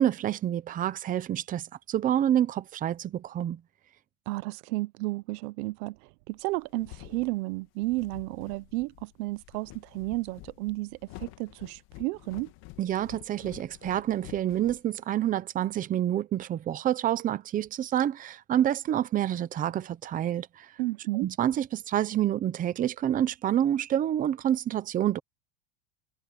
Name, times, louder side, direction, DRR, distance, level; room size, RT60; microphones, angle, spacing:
voice 1, 0.0-3.6 12.8-20.7 21.2-25.2, right 11 dB, 20° right, 0.5 m, -28 dB
voice 2, 4.3-12.5 20.8-21.3, right 21 dB, 85° right, 0.9 m, -32 dB
sound 1, 6.4-15.3, left 19 dB, 55° left, 2.2 m, -49 dB
cardioid pair, 170°, 44 cm